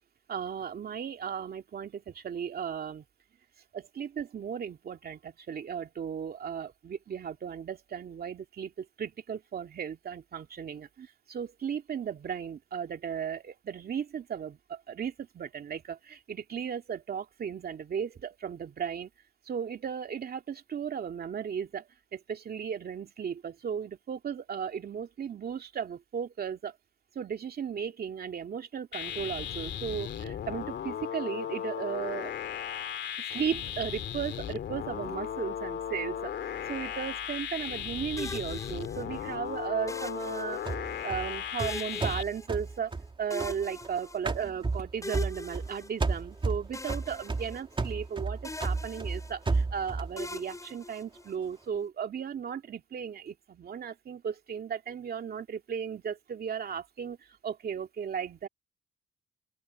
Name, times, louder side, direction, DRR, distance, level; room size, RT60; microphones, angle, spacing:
voice 1, 0.3-3.0 3.7-19.1 19.5-21.9 22.1-26.7 27.2-32.3 33.3-36.3 36.7-42.9 43.2-57.2 57.4-58.5, right 7 dB, 50° right, 2.4 m, -36 dB
sound 1, 28.9-42.2, left 9 dB, 65° left, 2.5 m, -36 dB
sound 2, 38.2-39.3 39.9-41.0 41.6-43.0 43.3-44.5 45.0-46.4 46.7-48.1 48.4-49.6 50.2-51.5, left 2 dB, 15° left, 7.8 m, -42 dB
sound 3, 40.6-43.9 44.2-45.7 46.0-50.1, right 3 dB, 25° right, 3.5 m, -32 dB
open air
cardioid pair, 90°, 20 cm